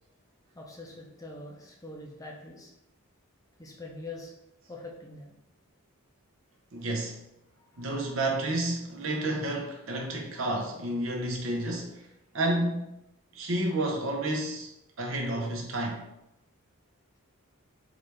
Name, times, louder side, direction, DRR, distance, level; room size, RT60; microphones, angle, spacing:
voice 1, 0.5-2.7 3.6-4.3 4.7-5.4 7.6-8.1 10.0-10.2, left 2 dB, 15° left, 0.6 m, -44 dB
voice 2, 6.7-7.2 7.8-12.1 12.3-12.9 13.3-14.7 15.0-16.0, right 1 dB, 60° right, 0.8 m, -30 dB
3.9 x 3.2 x 3.4 m
head